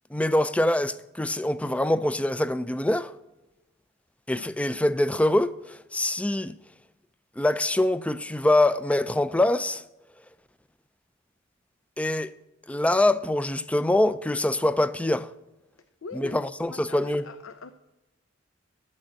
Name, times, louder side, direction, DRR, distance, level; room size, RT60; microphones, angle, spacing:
voice 1, 0.1-3.1 4.3-6.5 7.4-9.8 12.0-12.3 12.7-15.3 16.1-17.2, left 1 dB, 5° left, 0.4 m, -24 dB
voice 2, 16.0-16.4 16.7-17.7, left 3 dB, 80° left, 0.7 m, -41 dB
12.5 x 6.4 x 8.8 m
head